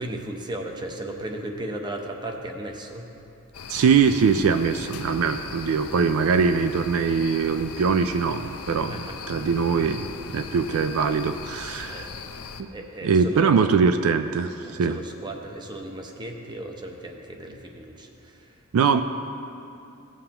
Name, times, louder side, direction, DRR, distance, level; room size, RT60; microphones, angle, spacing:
voice 1, 0.0-3.1 8.8-9.3 11.8-12.1 12.7-13.7 14.6-18.6, right 1 dB, 20° right, 2 dB, 0.8 m, -36 dB
sound 1, 3.5-12.6, left 5 dB, 85° left, 0.6 m, -39 dB
voice 2, 3.7-8.9 9.3-10.1 10.3-12.1 12.6-12.7 13.0-15.0 18.7-19.0, right 5 dB, 65° right, 9 dB, 0.3 m, -22 dB
16.5 x 7.2 x 2.9 m, 2.7 s
head